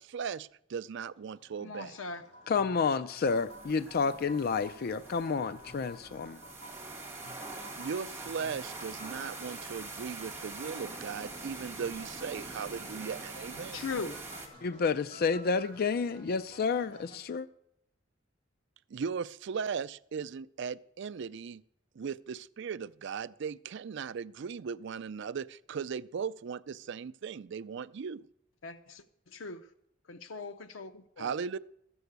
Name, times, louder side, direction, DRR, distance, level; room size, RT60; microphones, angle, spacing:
voice 1, 0.0-2.0 7.8-13.9 18.9-21.6 22.0-28.3 31.2-31.6, right 6 dB, 65° right, 0.4 m, -38 dB
sound 1, 1.0-17.2, equal, 30° left, 3.3 m, -53 dB
voice 2, 1.6-2.2 13.7-14.2 28.6-29.0 29.3-29.6 30.1-31.3, left 4 dB, 85° left, 0.7 m, -39 dB
voice 3, 2.5-6.4 14.6-17.5, left 5 dB, 50° left, 0.4 m, -30 dB
sound 2, 3.2-14.5, right 3 dB, 15° right, 2.3 m, -44 dB
13.5 x 7.1 x 7.9 m
head